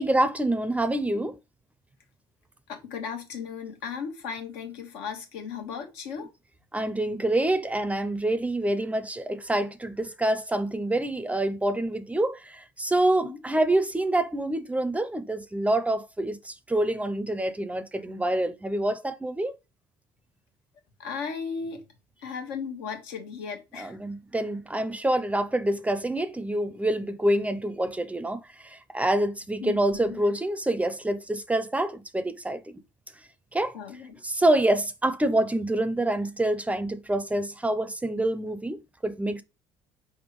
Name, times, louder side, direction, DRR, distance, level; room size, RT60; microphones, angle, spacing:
voice 1, 0.0-1.4 6.7-19.5 23.8-28.4 28.7-32.8 33.5-33.8 34.2-39.4, right 1 dB, 10° right, 0.5 m, -26 dB
voice 2, 2.7-6.3 13.2-13.4 21.0-21.8 22.2-24.0 29.6-30.2 33.7-34.2, left 6 dB, 85° left, 1.2 m, -36 dB
4.7 x 3.5 x 3.1 m
supercardioid pair, 80°, 12 cm